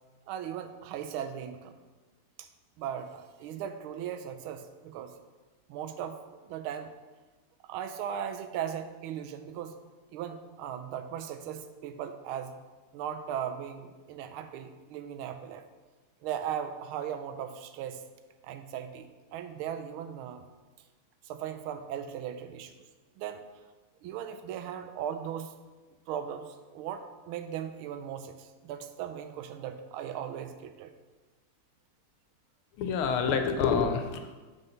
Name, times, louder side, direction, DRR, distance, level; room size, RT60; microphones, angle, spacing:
voice 1, 0.3-1.7 2.4-2.5 2.8-5.1 5.7-6.9 7.6-9.8 10.1-12.5 12.9-15.6 16.2-18.1 18.4-20.4 21.2-22.7 23.2-23.4 24.0-25.5 26.1-30.9 33.2-33.4, right 9 dB, 80° right, 8 dB, 1.4 m, -38 dB
voice 2, 32.8-34.3, left 6 dB, 80° left, 7 dB, 1.5 m, -27 dB
6.8 x 4.3 x 5.6 m, 1.3 s
omnidirectional pair, 2.4 m